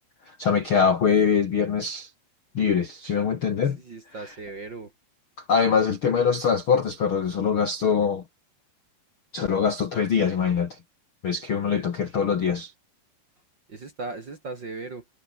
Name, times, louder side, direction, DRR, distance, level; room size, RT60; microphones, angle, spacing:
voice 1, 0.4-2.1 2.5-3.8 5.5-8.2 9.3-10.8 11.2-12.7, left 6 dB, 80° left, 1.1 m, -23 dB
voice 2, 3.6-4.9 13.7-15.0, right 3 dB, 35° right, 2.0 m, -37 dB
omnidirectional pair, 5.1 m